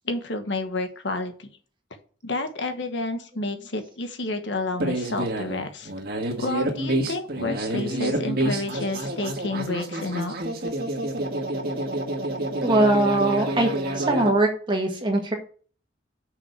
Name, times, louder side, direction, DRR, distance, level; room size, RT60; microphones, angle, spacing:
voice 1, 0.0-1.5 2.2-5.9 6.4-10.3, left 2 dB, 75° left, 6 dB, 1.3 m, -30 dB
sound 1, 4.8-14.3, right 1 dB, 50° right, 1.8 m, -28 dB
voice 2, 12.6-13.7 13.9-15.3, right 2 dB, 25° right, 3 dB, 1.6 m, -21 dB
6.5 x 5.7 x 6.8 m, 0.43 s
head